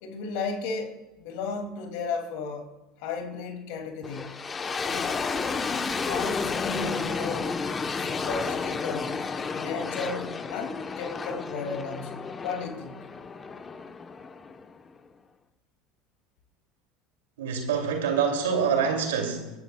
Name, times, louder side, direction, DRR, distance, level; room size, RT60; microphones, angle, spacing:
voice 1, 0.0-2.7 3.0-4.4 4.8-5.3 6.0-7.5 8.0-9.2 9.5-13.0, left 4 dB, 70° left, 4 dB, 2.4 m, -34 dB
sound 1, 4.0-15.0, left 5 dB, 30° left, 0.9 m, -32 dB
voice 2, 17.4-19.5, right 6 dB, 85° right, 3 dB, 2.5 m, -26 dB
25.0 x 11.5 x 2.3 m, 1.1 s
hypercardioid pair, 80°, 0 cm